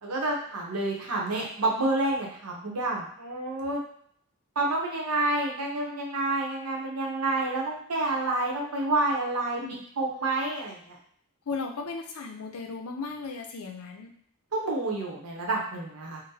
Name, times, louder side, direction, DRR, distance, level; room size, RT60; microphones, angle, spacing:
voice 1, 0.0-3.8 4.6-11.0 14.5-16.2, right 2 dB, 80° right, -1 dB, 0.8 m, -29 dB
voice 2, 11.5-14.1, left 4 dB, 75° left, 3 dB, 0.5 m, -36 dB
3.8 x 2.1 x 2.7 m, 0.63 s
head